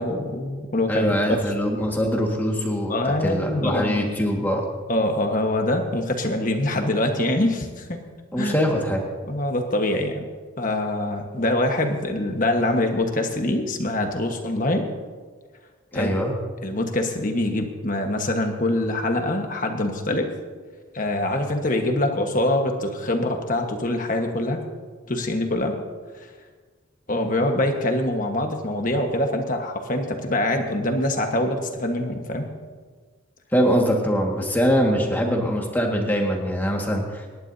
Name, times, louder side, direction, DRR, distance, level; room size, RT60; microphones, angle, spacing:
voice 1, 0.0-1.4 2.9-4.1 4.9-8.0 8.4-8.6 9.3-10.3 10.6-14.9 15.9-16.2 16.6-20.3 20.9-24.6 25.1-25.8 26.2-26.3 27.1-32.5, left 1 dB, 40° left, 4 dB, 1.4 m, -24 dB
voice 2, 0.9-2.9 3.2-4.6 8.3-9.0 15.9-16.3 33.5-37.4, equal, 10° left, 0 dB, 1.8 m, -23 dB
27.5 x 11.0 x 2.8 m, 1.5 s
head